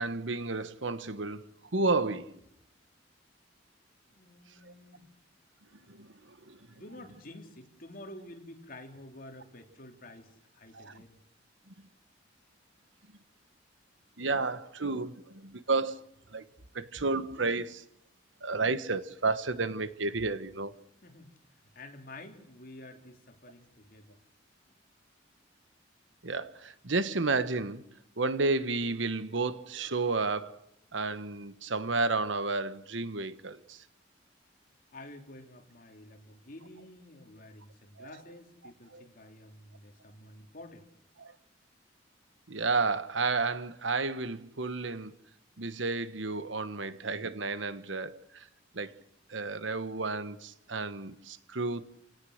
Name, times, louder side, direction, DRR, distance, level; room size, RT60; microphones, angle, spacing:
voice 1, 0.0-2.3 4.6-4.7 5.9-6.6 10.7-11.0 14.2-16.0 16.3-16.4 16.7-17.8 18.4-20.7 26.2-27.8 28.2-30.6 30.9-33.8 38.0-38.2 38.9-39.1 41.2-41.3 42.5-45.1 45.6-48.5 48.7-48.9 49.3-51.8, right 3 dB, 80° right, 1.3 m, -32 dB
voice 2, 4.1-5.0 6.7-11.2 21.0-21.3 21.7-24.2 34.9-40.9, left 1 dB, 50° left, 3.4 m, -50 dB
28.5 x 18.0 x 6.6 m
head